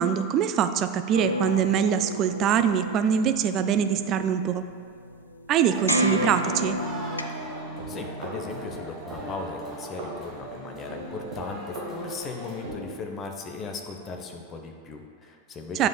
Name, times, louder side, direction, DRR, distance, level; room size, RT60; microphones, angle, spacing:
voice 1, 0.0-4.6 5.5-6.8 15.8-15.9, right 8 dB, 35° right, 9 dB, 0.3 m, -23 dB
sound 1, 1.1-7.2, left 1 dB, 80° left, 0.4 m, -32 dB
sound 2, 5.6-12.6, right 1 dB, 10° right, 1.4 m, -44 dB
sound 3, 5.7-12.8, right 2 dB, 50° right, 1.6 m, -37 dB
voice 2, 7.9-15.9, left 4 dB, 25° left, 3 dB, 0.7 m, -37 dB
9.0 x 5.6 x 2.2 m, 2.1 s
figure-of-eight pair, 90°, 0 cm